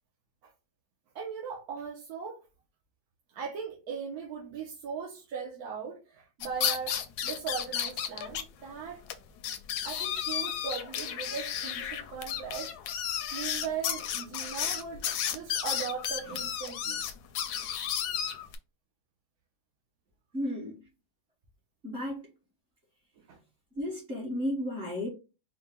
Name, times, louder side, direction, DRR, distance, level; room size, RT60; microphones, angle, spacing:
voice 1, 1.1-2.4 3.3-9.0 9.8-12.7 13.0-15.1 15.3-17.0 23.2-23.4, right 6 dB, 65° right, 1.1 m, -39 dB
sound 1, 6.4-8.4 8.7-8.8 9.1-9.2 9.4-18.6, left 9 dB, 70° left, 1.0 m, -33 dB
voice 2, 20.3-20.8 21.8-22.2 23.8-25.1, left 1 dB, 40° right, 1.5 m, -33 dB
4.5 x 2.1 x 3.6 m
omnidirectional pair, 2.0 m